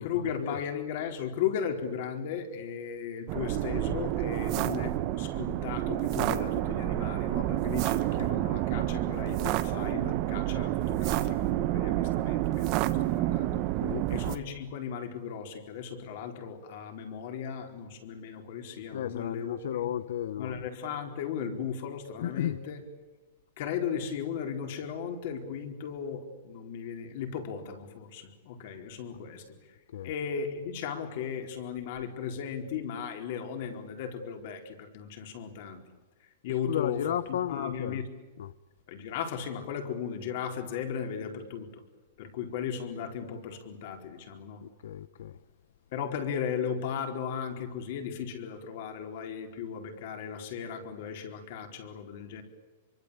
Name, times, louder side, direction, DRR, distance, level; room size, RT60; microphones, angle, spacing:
voice 1, 0.0-13.7 14.1-19.9 20.4-22.8 23.6-29.5 30.0-35.8 36.4-38.1 38.9-41.8 42.2-44.6 45.9-52.4, left 7 dB, 40° left, 4.4 m, -36 dB
sound 1, 3.3-14.4, right 15 dB, 30° right, 1.3 m, -29 dB
voice 2, 18.9-20.7 22.2-22.6 29.9-30.1 36.7-38.0 38.4-38.5 44.6-45.4, left 11 dB, 65° left, 1.0 m, -33 dB
27.5 x 24.5 x 8.4 m
supercardioid pair, 175°, 0 cm